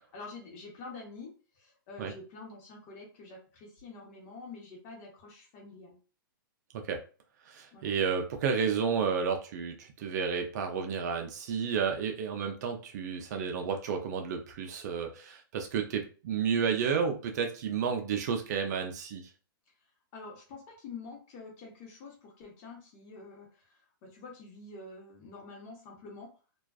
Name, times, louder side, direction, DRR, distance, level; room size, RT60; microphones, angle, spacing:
voice 1, 0.1-6.0 7.7-7.9 20.1-26.3, left 3 dB, 35° left, 0 dB, 1.0 m, -47 dB
voice 2, 7.5-19.3, right 6 dB, 50° right, 4 dB, 0.5 m, -31 dB
2.4 x 2.3 x 2.3 m, 0.36 s
hypercardioid pair, 145°, 12 cm